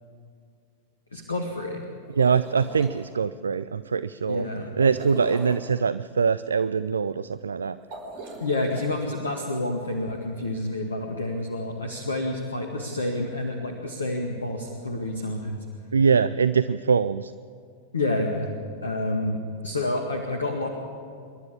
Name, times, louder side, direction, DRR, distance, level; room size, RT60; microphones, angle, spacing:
voice 1, 1.1-1.8 4.3-4.7 8.4-15.6 17.9-20.7, left 2 dB, 75° left, 3 dB, 1.9 m, -29 dB
sound 1, 2.0-2.9 4.8-5.7 7.8-8.9, right 3 dB, 50° right, 5.2 m, -39 dB
voice 2, 2.2-4.5 4.8-7.8 15.9-17.3, right 5 dB, 70° right, 15 dB, 0.4 m, -23 dB
28.0 x 12.0 x 8.6 m, 2.3 s
figure-of-eight pair, 90°, 0 cm